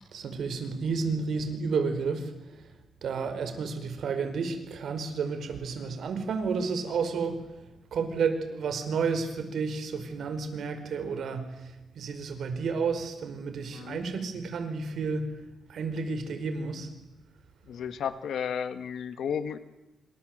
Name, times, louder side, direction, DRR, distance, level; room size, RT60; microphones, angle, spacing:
voice 1, 0.1-2.7 3.0-7.6 7.9-15.4 15.7-16.9, right 5 dB, 65° right, 8 dB, 4.9 m, -31 dB
voice 2, 17.7-19.6, left 7 dB, 70° left, 11 dB, 1.7 m, -33 dB
28.0 x 26.0 x 7.9 m, 0.99 s
wide cardioid pair, 155°, 0 cm